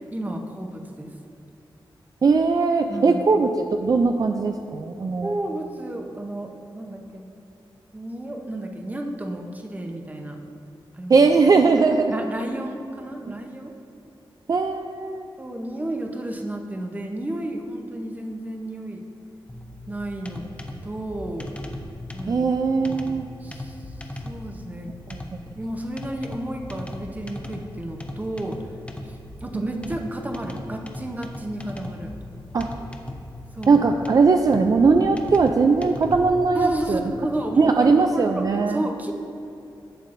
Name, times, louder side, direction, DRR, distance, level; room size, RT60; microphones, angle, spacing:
voice 1, 0.1-1.1 2.9-3.3 5.2-7.3 7.9-10.4 10.9-11.2 12.1-13.7 15.4-19.0 19.9-20.4 20.8-21.5 22.1-22.5 22.9-23.8 24.2-24.9 25.5-28.6 29.1-32.1 33.6-33.9 36.5-39.1, right 1 dB, 20° right, 3 dB, 0.8 m, -32 dB
voice 2, 2.2-5.3 11.1-12.1 13.3-13.4 14.5-15.2 22.3-23.3 25.1-25.2 29.5-29.9 32.5-32.7 33.7-37.0 37.6-38.8, right 4 dB, 45° right, 5 dB, 0.4 m, -20 dB
sound 1, 19.5-37.4, left 1 dB, 15° left, 0.6 m, -38 dB
11.0 x 7.2 x 2.6 m, 2.8 s
wide cardioid pair, 95°, 9 cm